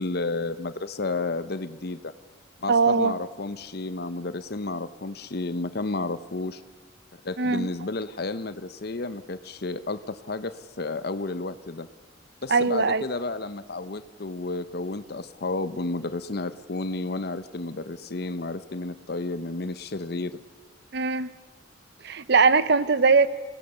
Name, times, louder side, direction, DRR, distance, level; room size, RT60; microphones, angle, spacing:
voice 1, 0.0-2.1 2.6-6.6 7.2-11.9 12.4-20.4, left 3 dB, 55° left, 13 dB, 0.8 m, -32 dB
voice 2, 2.7-3.1 7.4-7.7 12.5-13.0 20.9-21.3 22.0-23.3, right 4 dB, 60° right, 15 dB, 0.9 m, -20 dB
29.0 x 19.0 x 6.8 m, 1.3 s
head